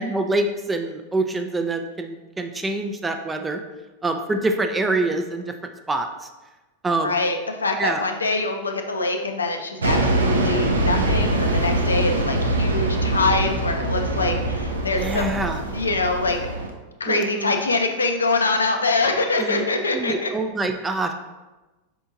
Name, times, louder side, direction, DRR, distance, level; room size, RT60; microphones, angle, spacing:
voice 1, 0.0-3.6 4.0-6.1 6.8-7.2 7.8-8.1 14.8-15.6 17.1-17.6 19.4-19.6 19.9-21.1, right 2 dB, 10° right, 6 dB, 0.4 m, -25 dB
voice 2, 7.0-15.4 15.7-16.4 17.0-20.3, left 3 dB, 75° left, 4 dB, 0.4 m, -24 dB
sound 1, 9.8-16.7, right 2 dB, 70° right, 0.5 m, -23 dB
4.4 x 4.3 x 2.6 m, 1.1 s
figure-of-eight pair, 90°, 0 cm